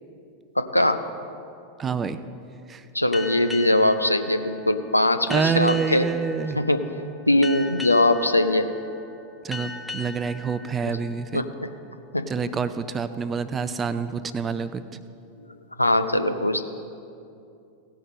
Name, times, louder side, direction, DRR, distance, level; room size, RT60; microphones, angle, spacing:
voice 1, 0.6-1.0 2.9-6.1 6.6-6.9 7.3-8.7 10.8-10.9 11.3-11.7 12.1-12.3 15.4-15.5 15.8-16.6, left 1 dB, 85° left, 8 dB, 0.5 m, -21 dB
voice 2, 1.8-2.2 2.7-2.9 5.3-6.6 9.4-11.4 12.3-14.8, right 5 dB, 20° right, 12 dB, 0.5 m, -27 dB
sound 1, 3.1-12.3, left 3 dB, ahead, 0.8 m, -39 dB
16.5 x 5.8 x 5.3 m, 2.6 s
figure-of-eight pair, 90°, 0 cm